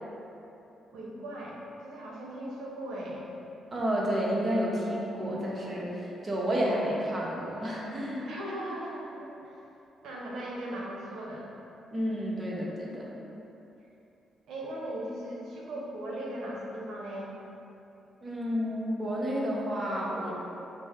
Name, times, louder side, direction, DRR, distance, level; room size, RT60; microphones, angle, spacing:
voice 1, 0.9-1.6 1.8-3.3 8.2-9.6 10.0-11.5 14.5-17.3, right 1 dB, 70° right, -4 dB, 0.9 m, -38 dB
voice 2, 3.7-8.3 11.9-13.2 18.2-20.3, equal, 35° right, -4 dB, 1.0 m, -30 dB
5.8 x 2.1 x 3.7 m, 2.9 s
supercardioid pair, 65°, 0 cm